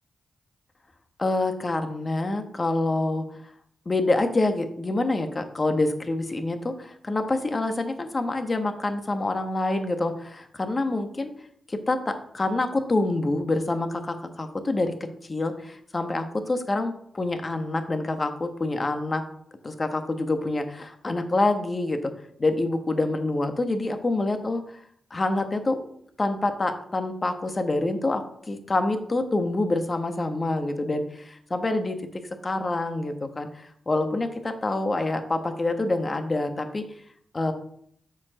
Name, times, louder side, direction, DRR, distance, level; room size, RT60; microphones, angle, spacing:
voice 1, 1.2-3.2 3.8-11.3 11.7-14.9 15.2-19.2 19.6-22.1 22.4-24.6 25.1-25.8 26.2-32.0 32.4-36.8 37.3-37.5, left 2 dB, 40° left, 7 dB, 1.4 m, -26 dB
7.1 x 4.7 x 6.2 m, 0.67 s
supercardioid pair, 45°, 0 cm